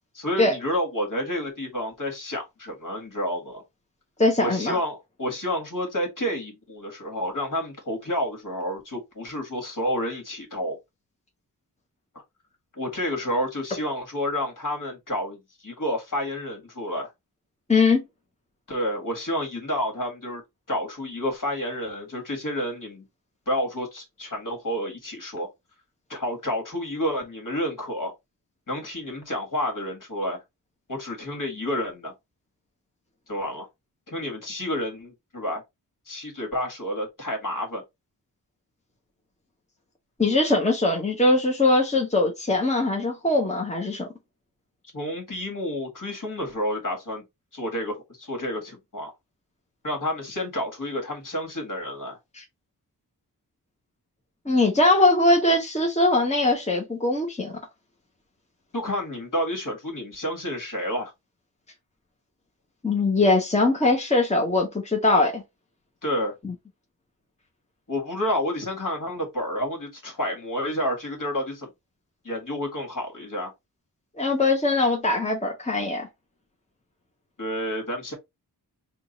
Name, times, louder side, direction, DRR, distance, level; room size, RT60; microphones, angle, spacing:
voice 1, 0.1-3.6 4.4-10.8 12.8-17.1 18.7-20.4 20.7-23.1 23.5-25.5 26.1-28.1 28.7-30.4 30.9-32.1 33.3-33.7 34.1-35.6 36.1-37.8 44.9-47.2 47.5-49.1 49.8-52.2 58.7-61.1 66.0-66.3 67.9-71.7 72.2-73.5 77.4-78.1, left 1 dB, 50° left, 1.9 m, -30 dB
voice 2, 4.2-4.8 17.7-18.0 40.2-44.1 52.3-52.4 54.5-57.6 62.8-65.4 66.4-66.5 74.2-76.1, left 2 dB, 15° left, 1.1 m, -21 dB
3.8 x 2.4 x 3.9 m
wide cardioid pair, 100°, 40 cm